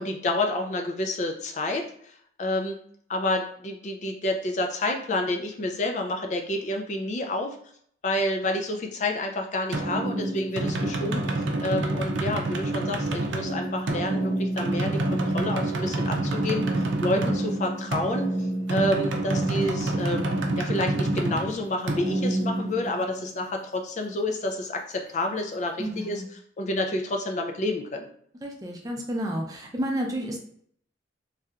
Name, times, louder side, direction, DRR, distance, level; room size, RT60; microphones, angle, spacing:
voice 1, 0.0-2.8 3.1-7.6 8.0-20.3 20.6-28.1, left 1 dB, 40° left, 3 dB, 0.3 m, -29 dB
sound 1, 9.7-23.3, right 1 dB, 85° right, 0.5 m, -27 dB
voice 2, 25.8-26.3 28.4-30.4, equal, 20° right, 1 dB, 0.5 m, -31 dB
3.2 x 2.8 x 2.4 m, 0.63 s
head